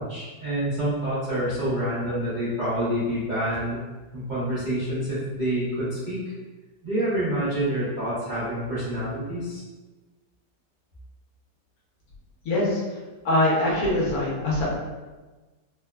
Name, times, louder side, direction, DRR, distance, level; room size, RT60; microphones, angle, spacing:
voice 1, 0.0-3.8 4.1-6.2 6.8-9.6, right 1 dB, 55° right, -13 dB, 0.5 m, -27 dB
voice 2, 12.4-13.0 13.2-14.6, left 1 dB, 65° left, -6 dB, 1.1 m, -23 dB
3.3 x 2.0 x 2.2 m, 1.2 s
omnidirectional pair, 1.9 m